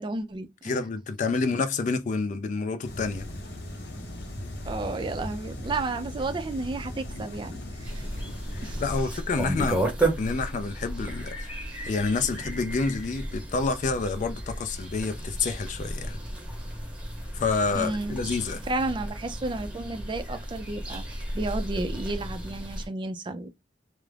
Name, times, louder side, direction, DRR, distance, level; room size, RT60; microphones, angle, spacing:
voice 1, 0.0-0.8 1.3-1.4 4.7-8.1 8.6-8.8 9.7-9.8 17.8-18.2 18.7-23.5, right 2 dB, 30° right, 0.4 m, -32 dB
voice 2, 0.6-3.3 8.5-16.2 17.3-18.6, left 4 dB, 45° left, 0.3 m, -29 dB
sound 1, 2.8-9.0, left 1 dB, 65° left, 0.8 m, -38 dB
sound 2, 7.8-22.9, right 1 dB, 5° right, 0.8 m, -33 dB
2.3 x 2.0 x 3.2 m
head